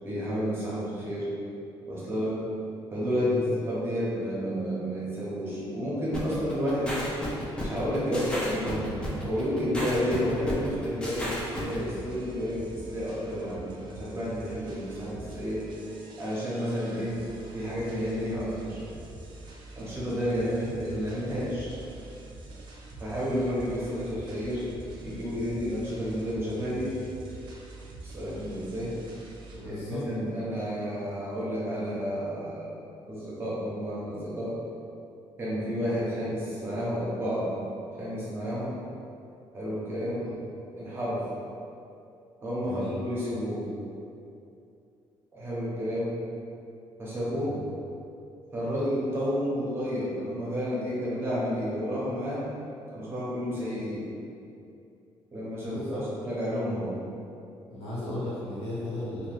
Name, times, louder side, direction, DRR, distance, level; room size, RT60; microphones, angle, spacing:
voice 1, 0.0-1.3 1.9-2.4 2.9-7.0 7.6-8.9 9.2-15.7 16.2-17.2 17.5-18.8 19.7-21.7 23.0-24.7 25.0-27.0 28.0-28.9 29.6-32.7 33.1-34.6 35.4-37.5 38.0-38.8 39.5-40.2 40.7-41.2 42.4-43.7 45.3-46.1 47.0-47.5 48.5-52.4 52.9-54.0 55.3-56.9, equal, 25° right, -8 dB, 0.8 m, -31 dB
voice 2, 3.2-3.5 29.5-30.0 40.2-40.3 42.6-42.9 47.3-47.6 55.6-56.0 57.7-59.3, left 1 dB, 85° left, -8 dB, 1.1 m, -36 dB
sound 1, 6.1-11.8, equal, 10° left, 0.4 m, -33 dB
sound 2, 11.6-29.6, right 2 dB, 55° right, 0.4 m, -45 dB
2.8 x 2.3 x 3.3 m, 2.6 s
cardioid pair, 160°, 10 cm